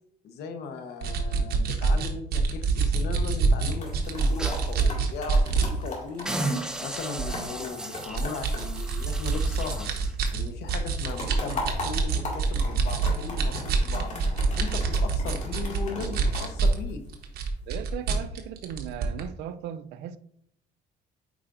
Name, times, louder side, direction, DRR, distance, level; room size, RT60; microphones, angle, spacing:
voice 1, 0.2-6.3 6.8-9.9 10.3-14.2 14.5-17.0, left 5 dB, 75° left, 7 dB, 1.0 m, -37 dB
sound 1, 1.0-5.7 6.2-6.4 6.9-7.4 8.0-16.8 17.1-19.2, right 4 dB, 65° right, 1.1 m, -26 dB
sound 2, 3.5-10.0 10.3-17.4 17.9-18.3, left 2 dB, 45° left, 2.2 m, -40 dB
sound 3, 3.9-4.8 5.2-5.3 5.7-5.9 6.3-10.1 10.7-10.8, right 1 dB, 5° right, 0.8 m, -35 dB
voice 2, 17.7-20.2, right 10 dB, 85° right, 13 dB, 0.5 m, -37 dB
8.6 x 4.9 x 2.6 m, 0.70 s
cardioid pair, 110°, 17 cm